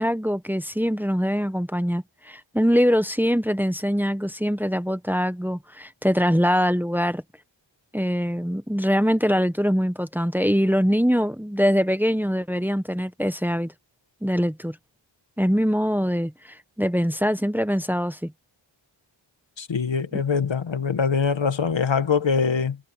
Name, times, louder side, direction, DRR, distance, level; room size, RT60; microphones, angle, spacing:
voice 1, 0.0-7.2 7.9-13.7 14.2-14.8 15.4-18.3 20.1-20.2, equal, 5° right, 1.1 m, -23 dB
voice 2, 19.6-22.8, left 5 dB, 75° left, 1.5 m, -23 dB
wide cardioid pair, 65°, 46 cm